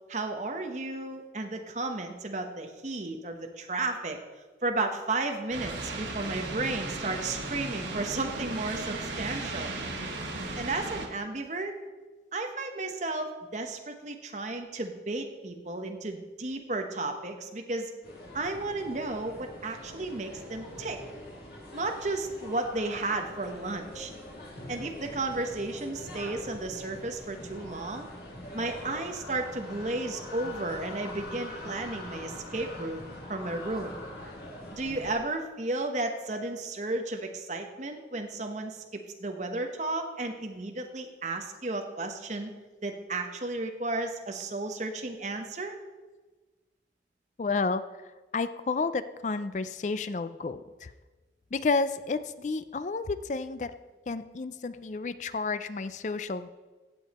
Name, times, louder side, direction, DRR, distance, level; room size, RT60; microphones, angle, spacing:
voice 1, 0.1-4.2 4.6-9.7 10.6-11.8 12.3-17.9 18.3-21.0 21.7-24.1 24.7-28.1 28.5-33.0 33.3-33.9 34.7-42.5 42.8-45.8, right 2 dB, 40° right, 4 dB, 1.0 m, -33 dB
sound 1, 5.5-11.1, right 2 dB, 90° right, 1.6 m, -36 dB
sound 2, 18.0-35.1, left 1 dB, 60° left, 2.9 m, -43 dB
voice 2, 47.4-47.8 48.3-50.9 51.5-53.7 54.1-56.5, left 4 dB, 40° left, 13 dB, 0.4 m, -31 dB
16.0 x 7.1 x 4.2 m, 1.2 s
head